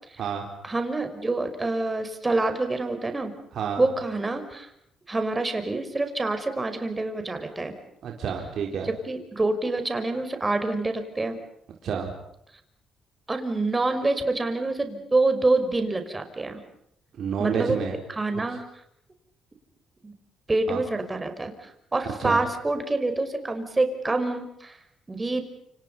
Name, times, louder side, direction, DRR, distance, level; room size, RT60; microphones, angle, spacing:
voice 1, 0.6-3.3 3.8-4.7 5.1-7.7 8.8-11.4 13.3-16.6 17.4-17.8 18.1-18.7 20.0-20.1 20.5-24.8 25.1-25.4, right 2 dB, 20° right, 7 dB, 5.6 m, -26 dB
voice 2, 8.0-8.9 11.8-12.1 17.2-18.0 20.7-20.8 22.2-22.4, right 7 dB, 65° right, 1 dB, 4.3 m, -29 dB
29.0 x 28.0 x 5.6 m, 0.75 s
cardioid pair, 90°, 0 cm